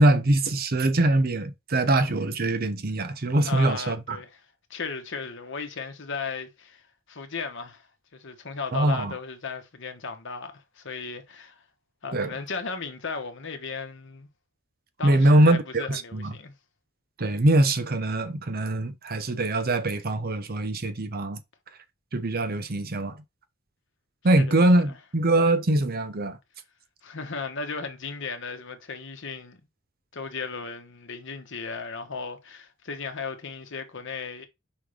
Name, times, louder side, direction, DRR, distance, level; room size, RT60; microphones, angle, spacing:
voice 1, 0.0-4.2 8.7-9.1 12.1-12.3 15.0-16.3 17.2-21.4 22.1-23.2 24.2-26.4, right 1 dB, 45° right, 0.8 m, -23 dB
voice 2, 3.4-4.4 4.7-7.9 8.1-11.6 12.0-14.3 15.0-16.5 24.3-25.0 27.0-29.6 30.1-34.5, left 5 dB, 60° left, 1.2 m, -36 dB
5.4 x 3.6 x 5.0 m
head